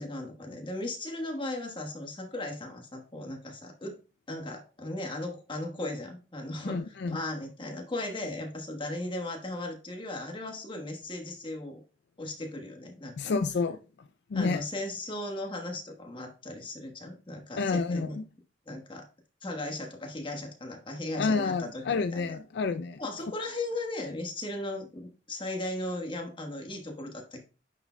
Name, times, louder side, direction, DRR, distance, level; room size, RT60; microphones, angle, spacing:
voice 1, 0.0-4.0 4.3-11.8 12.2-13.1 14.3-18.2 18.7-19.0 19.4-22.4 23.0-27.4, left 1 dB, 30° left, 1.2 m, -37 dB
voice 2, 6.6-7.2 13.2-13.8 14.3-14.6 17.6-18.2 21.1-23.0, left 4 dB, 65° left, 0.4 m, -29 dB
9.6 x 4.6 x 2.2 m
head